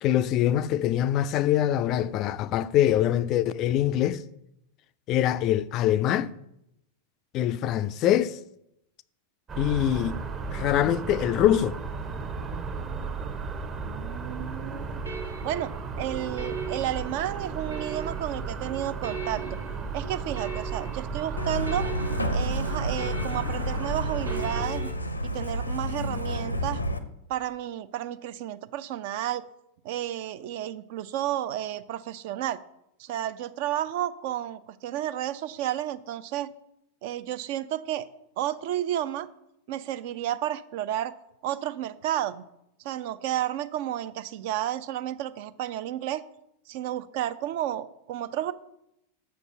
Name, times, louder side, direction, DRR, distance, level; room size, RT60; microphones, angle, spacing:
voice 1, 0.0-4.2 5.1-6.3 7.3-8.4 9.6-10.2 10.5-11.8, left 11 dB, 35° left, 0.3 m, -24 dB
sound 1, 9.5-24.7, right 4 dB, 25° right, 0.8 m, -35 dB
voice 2, 13.9-15.0 15.4-19.6 19.9-21.9 22.3-24.9 25.2-26.8 27.3-29.4 29.8-32.6 33.0-36.5 37.0-38.1 38.4-39.3 39.7-41.1 41.4-42.4 42.8-46.2 46.7-48.5, right 12 dB, 50° right, 0.4 m, -32 dB
sound 2, 14.4-24.9, right 5 dB, 75° right, 1.4 m, -40 dB
Truck, 21.4-27.0, equal, 85° left, 0.6 m, -30 dB
6.5 x 5.3 x 6.9 m
figure-of-eight pair, 90°, 0 cm